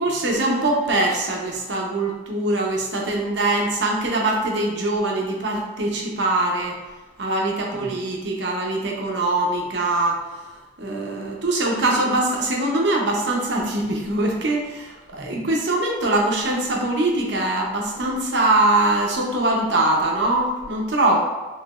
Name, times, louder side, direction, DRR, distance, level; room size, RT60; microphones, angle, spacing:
voice 1, 0.0-6.7 7.2-10.2 10.8-21.2, right 2 dB, 70° right, -1 dB, 0.8 m, -22 dB
4.8 x 3.1 x 2.4 m, 1.2 s
head